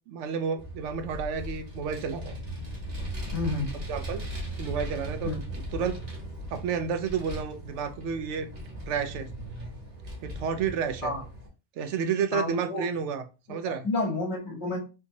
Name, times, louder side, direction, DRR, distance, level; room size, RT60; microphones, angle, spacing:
voice 1, 0.1-2.4 3.9-4.2 4.6-5.3 5.7-6.0 6.5-8.5 8.9-9.3 10.2-11.1 11.8-13.2 13.5-13.9, right 6 dB, 80° right, 0.9 m, -30 dB
Vehicle, 0.6-11.5, right 1 dB, 60° right, 1.6 m, -38 dB
voice 2, 3.3-3.7 5.2-5.4 11.0-11.2 12.3-12.8 13.8-14.8, left 2 dB, 70° left, 1.4 m, -29 dB
3.4 x 2.8 x 2.7 m
omnidirectional pair, 1.2 m